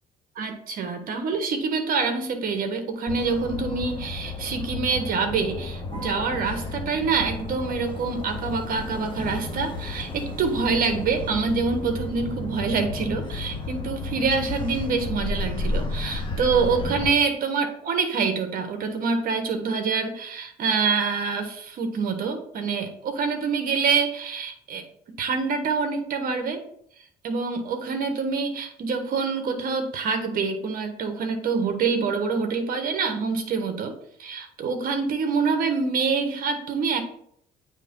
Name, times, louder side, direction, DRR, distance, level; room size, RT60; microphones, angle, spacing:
voice 1, 0.4-24.8 25.2-26.6 27.2-33.9 34.2-37.0, right 5 dB, 55° right, 6 dB, 1.3 m, -26 dB
Motor vehicle (road), 3.1-17.1, left 2 dB, 30° left, 1.6 m, -32 dB
9.2 x 3.2 x 3.7 m, 0.67 s
cardioid pair, 110°, 17 cm